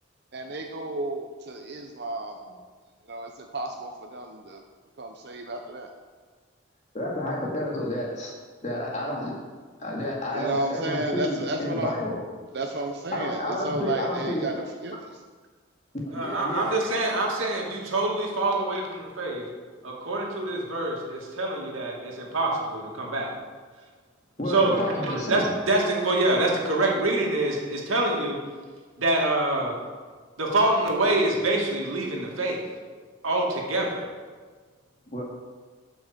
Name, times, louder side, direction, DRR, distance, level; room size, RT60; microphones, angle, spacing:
voice 1, 0.3-2.4 3.1-4.6 5.0-5.9 10.3-11.9 12.5-15.2, right 2 dB, 55° right, 3 dB, 0.7 m, -32 dB
voice 2, 6.9-8.3 8.6-9.3 9.8-12.2 13.1-14.5 16.1-16.8 24.4-25.5 35.1-35.2, left 1 dB, 35° left, -3 dB, 2.2 m, -30 dB
voice 3, 16.1-19.4 19.8-23.3 24.5-24.8 25.1-28.4 29.0-29.7 30.4-32.6 33.2-34.1, right 2 dB, 80° right, -1 dB, 2.3 m, -25 dB
12.5 x 6.2 x 5.2 m, 1.5 s
head